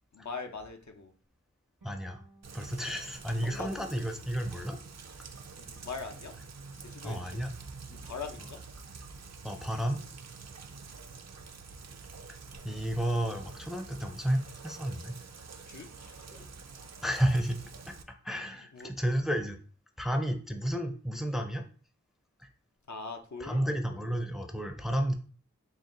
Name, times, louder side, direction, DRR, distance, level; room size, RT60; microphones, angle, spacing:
voice 1, 0.1-1.1 2.8-2.9 3.4-3.8 5.6-6.3 6.8-7.4 7.9-8.6 12.6-12.8 15.7-16.3 18.5-18.9 22.9-23.7, left 4 dB, 65° left, 4 dB, 0.6 m, -42 dB
voice 2, 1.8-2.2 2.5-4.8 7.0-7.6 9.4-10.0 12.6-15.2 16.3-16.5 17.0-17.9 18.2-19.6 20.0-21.6 22.4-22.5 23.4-25.1, right 1 dB, ahead, 5 dB, 0.5 m, -32 dB
sound 1, 1.8-4.9, right 1 dB, 90° right, 1.0 m, -61 dB
Rain, 2.4-18.0, right 4 dB, 60° right, 0.5 m, -47 dB
4.0 x 2.3 x 3.7 m, 0.41 s
wide cardioid pair, 45°, 31 cm